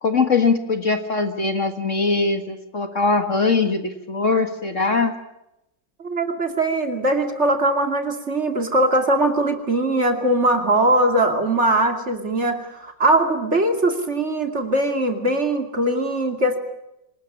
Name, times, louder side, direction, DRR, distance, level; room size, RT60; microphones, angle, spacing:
voice 1, 0.0-5.1, left 4 dB, 45° left, 7 dB, 2.0 m, -21 dB
voice 2, 6.0-16.6, right 1 dB, 40° right, 5 dB, 2.8 m, -21 dB
26.5 x 19.5 x 8.7 m, 0.86 s
omnidirectional pair, 1.9 m